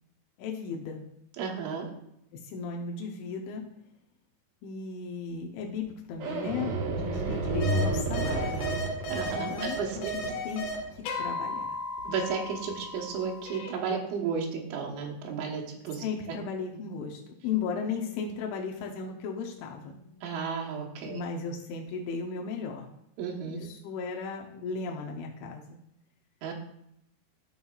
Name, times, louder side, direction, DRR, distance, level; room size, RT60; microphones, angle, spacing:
voice 1, 0.4-1.0 2.5-3.6 4.6-8.6 9.5-10.6 11.2-11.8 16.0-20.0 21.0-22.9 23.4-25.6, left 5 dB, 90° left, 0 dB, 3.2 m, -35 dB
voice 2, 1.4-1.9 6.9-7.3 9.1-10.1 12.1-16.0 20.2-21.2 23.2-23.6 26.4-26.5, right 6 dB, 80° right, -1 dB, 3.5 m, -33 dB
sound 1, 6.2-11.2 12.0-12.1 12.4-12.7, right 2 dB, 65° right, 2.5 m, -31 dB
sound 2, 7.6-7.8 8.1-10.8 11.0-13.7, left 1 dB, 70° left, 3.5 m, -35 dB
sound 3, 17.5-21.7, left 6 dB, 30° left, 3.1 m, -52 dB
12.5 x 5.5 x 2.4 m, 0.78 s
omnidirectional pair, 5.4 m